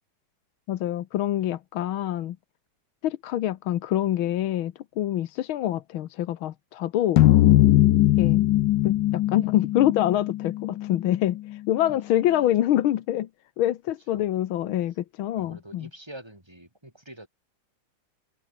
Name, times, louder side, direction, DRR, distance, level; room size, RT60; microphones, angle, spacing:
voice 1, 0.7-2.4 3.0-7.2 8.2-8.5 8.8-13.3 13.6-15.9, left 12 dB, 90° left, 1.8 m, -26 dB
sound 1, 7.2-11.5, left 15 dB, 70° left, 1.2 m, -20 dB
voice 2, 15.4-17.3, right 1 dB, 10° right, 5.6 m, -45 dB
omnidirectional pair, 2.2 m